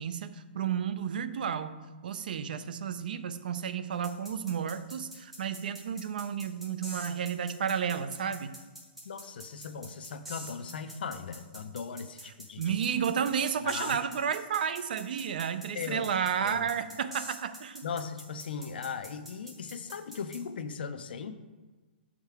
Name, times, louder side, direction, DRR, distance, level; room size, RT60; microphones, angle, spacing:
voice 1, 0.0-1.8 2.0-8.5 12.6-17.8, right 7 dB, 55° right, 11 dB, 0.4 m, -32 dB
sound 1, 4.0-20.4, equal, 5° right, 0.6 m, -46 dB
voice 2, 9.0-12.8 13.6-14.0 15.7-16.1 16.4-16.6 17.8-21.4, left 6 dB, 65° left, 10 dB, 0.5 m, -38 dB
6.5 x 3.6 x 4.6 m, 1.3 s
hypercardioid pair, 175°, 6 cm